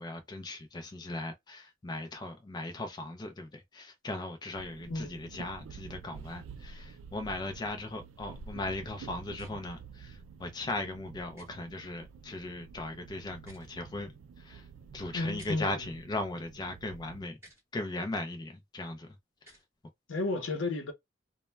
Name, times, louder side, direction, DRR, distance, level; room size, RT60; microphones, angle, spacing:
voice 1, 0.0-14.7 14.9-17.4 17.7-19.1, left 2 dB, 20° left, 0.4 m, -38 dB
sound 1, 4.5-17.2, right 6 dB, 90° right, 0.3 m, -49 dB
sound 2, 9.3-9.5 11.3-11.5 13.3-13.7 15.3-15.6 17.4-17.6 19.4-19.6, equal, 15° right, 1.0 m, -55 dB
voice 2, 15.1-15.8 20.1-20.9, left 2 dB, 75° left, 0.7 m, -32 dB
2.1 x 2.1 x 3.1 m
head